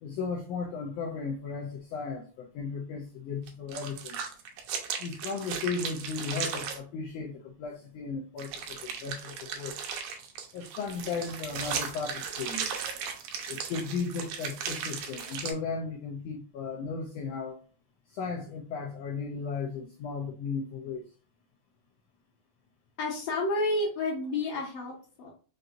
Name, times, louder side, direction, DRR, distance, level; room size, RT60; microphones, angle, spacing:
voice 1, 0.0-4.3 5.0-9.8 10.5-12.7 13.5-17.6 18.1-21.0, left 5 dB, 85° left, 1.4 m, -35 dB
sound 1, 3.5-6.8 8.4-15.5, right 7 dB, 75° right, 2.0 m, -36 dB
voice 2, 23.0-25.3, left 2 dB, 65° left, 1.9 m, -30 dB
5.4 x 2.6 x 2.5 m
omnidirectional pair, 3.6 m